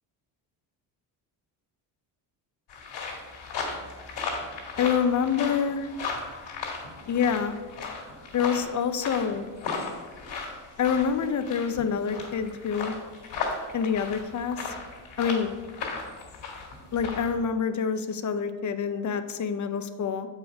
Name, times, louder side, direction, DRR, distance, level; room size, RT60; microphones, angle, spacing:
sound 1, 2.7-17.4, left 4 dB, 65° left, 2.3 m, -36 dB
voice 1, 4.8-5.9 7.1-7.6 8.3-9.5 10.8-12.9 13.7-14.7 15.2-15.5 16.9-20.3, left 7 dB, 40° left, 10 dB, 0.7 m, -27 dB
6.9 x 4.9 x 5.2 m, 1.4 s
cardioid pair, 85°, 44 cm